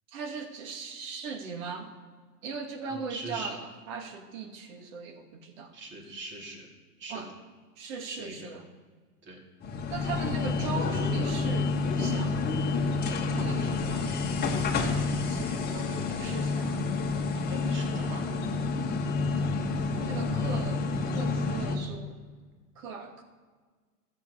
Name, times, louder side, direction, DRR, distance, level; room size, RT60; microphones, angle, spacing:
voice 1, 0.1-1.9 2.4-3.6 3.9-5.7 7.1-7.3 7.8-8.5 9.9-12.4 13.3-14.2 14.8-16.9 19.9-22.2 22.8-23.2, right 5 dB, 55° right, 4 dB, 2.4 m, -39 dB
voice 2, 2.8-3.6 5.7-6.7 7.0-7.2 8.1-8.6 9.2-9.4 17.3-18.3, right 2 dB, 25° right, 0 dB, 2.5 m, -41 dB
sound 1, 9.6-21.8, left 4 dB, 20° left, 1.9 m, -29 dB
14.0 x 7.5 x 6.5 m, 1.5 s
hypercardioid pair, 135°, 47 cm